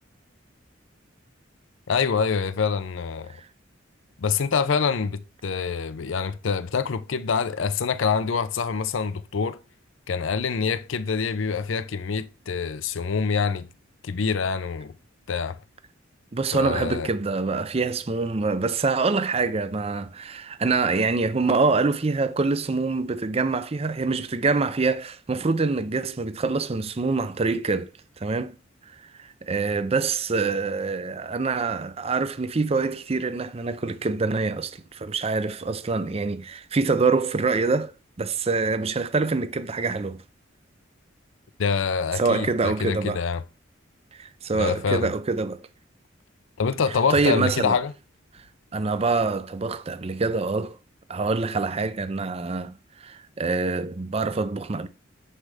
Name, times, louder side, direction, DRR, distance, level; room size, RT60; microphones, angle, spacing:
voice 1, 1.9-3.3 4.2-9.6 10.1-13.7 14.0-14.9 15.3-15.6 16.5-17.1 41.6-43.4 44.5-45.1 46.6-47.9, left 5 dB, 80° left, 0.5 m, -26 dB
voice 2, 16.3-27.9 28.2-28.6 29.2-40.2 42.2-43.2 44.1-45.7 46.9-47.8 48.3-48.4 48.7-50.8 51.1-54.9, right 4 dB, 30° right, 0.5 m, -25 dB
9.9 x 3.3 x 4.9 m
head